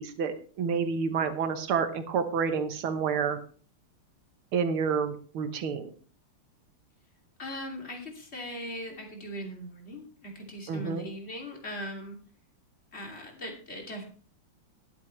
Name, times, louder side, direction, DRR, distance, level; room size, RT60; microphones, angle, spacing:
voice 1, 0.0-3.4 4.5-5.9 10.7-11.0, right 6 dB, 85° right, 9 dB, 2.0 m, -29 dB
voice 2, 7.4-12.2 12.9-14.0, equal, 30° left, 1 dB, 2.9 m, -39 dB
21.5 x 7.8 x 3.2 m, 0.41 s
omnidirectional pair, 2.3 m